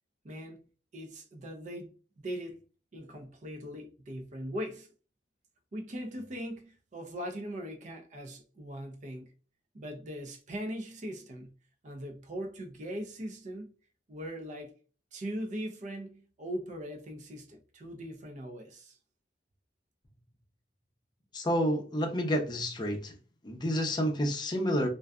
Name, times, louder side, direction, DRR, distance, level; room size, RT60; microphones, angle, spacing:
voice 1, 0.2-0.6 0.9-2.6 2.9-4.9 5.7-9.3 9.7-11.5 11.8-13.7 14.1-14.7 15.1-19.0, equal, 45° right, 0.5 m, -40 dB
voice 2, 21.3-23.1 23.4-24.9, equal, 25° left, 0.5 m, -29 dB
2.5 x 2.2 x 2.3 m
head